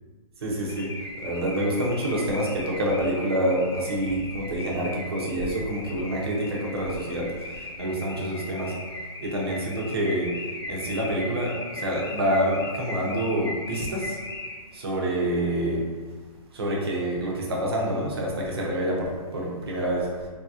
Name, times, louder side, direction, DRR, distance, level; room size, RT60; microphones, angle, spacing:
voice 1, 0.4-8.8 9.2-10.4 10.7-14.2 14.7-15.9 16.5-20.1, right 1 dB, 40° right, -2 dB, 0.6 m, -27 dB
Car / Alarm, 0.7-14.8, left 2 dB, 40° left, 0.4 m, -38 dB
3.1 x 2.8 x 2.3 m, 1.5 s
hypercardioid pair, 170°, 19 cm